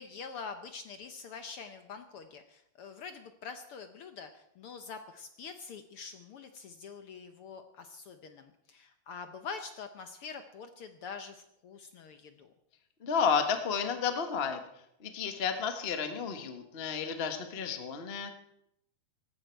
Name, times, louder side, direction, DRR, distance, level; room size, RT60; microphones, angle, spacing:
voice 1, 0.0-12.5, left 5 dB, 70° left, 8 dB, 1.3 m, -45 dB
voice 2, 13.0-14.6 15.0-18.3, left 6 dB, 90° left, 6 dB, 0.5 m, -31 dB
18.5 x 15.5 x 4.5 m, 0.78 s
omnidirectional pair, 3.6 m